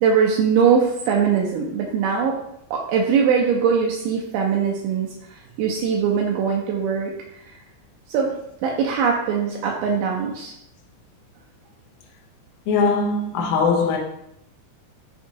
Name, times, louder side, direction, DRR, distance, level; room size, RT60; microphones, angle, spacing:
voice 1, 0.0-2.4 2.7-5.1 5.6-7.1 8.1-8.3 8.6-10.5, right 6 dB, 85° right, 2.2 m, -21 dB
voice 2, 12.7-14.0, left 4 dB, 85° left, 1.8 m, -20 dB
5.8 x 2.7 x 2.7 m
omnidirectional pair, 3.9 m